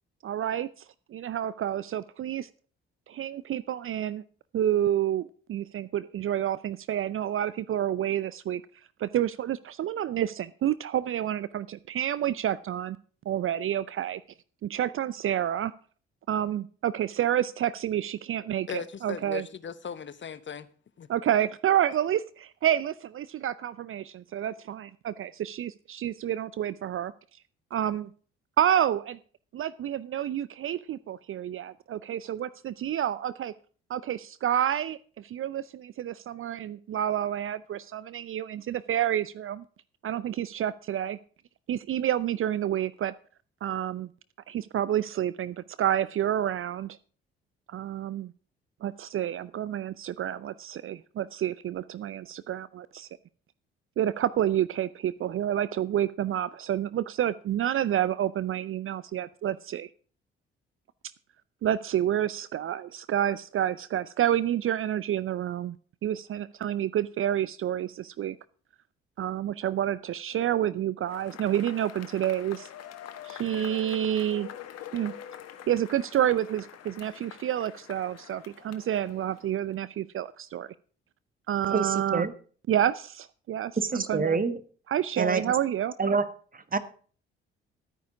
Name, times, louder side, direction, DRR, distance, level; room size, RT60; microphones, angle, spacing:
voice 1, 0.2-0.8 1.1-2.5 3.1-4.2 4.5-8.6 9.0-13.0 13.3-14.2 14.6-15.7 16.3-19.5 21.1-27.1 27.7-28.1 28.6-29.2 29.5-33.5 33.9-39.6 40.0-41.2 41.7-43.1 43.6-44.1 44.5-47.0 47.7-48.3 48.8-53.1 54.0-59.9 61.6-65.8 66.0-68.4 69.2-72.7 73.2-74.5 74.9-75.1 75.7-80.7 81.5-82.2 82.7-84.4 84.9-85.9, right 11 dB, 45° right, 0.6 m, -29 dB
voice 2, 18.7-20.7 21.0-21.1, left 7 dB, 40° left, 1.1 m, -38 dB
Cheering / Applause / Crowd, 71.1-79.7, left 10 dB, 60° left, 1.4 m, -45 dB
voice 3, 81.7-82.3 83.8-84.6 85.2-85.4 86.0-86.2 86.5-86.8, right 4 dB, 30° right, 1.5 m, -26 dB
13.0 x 9.4 x 4.9 m
hypercardioid pair, 45°, 29 cm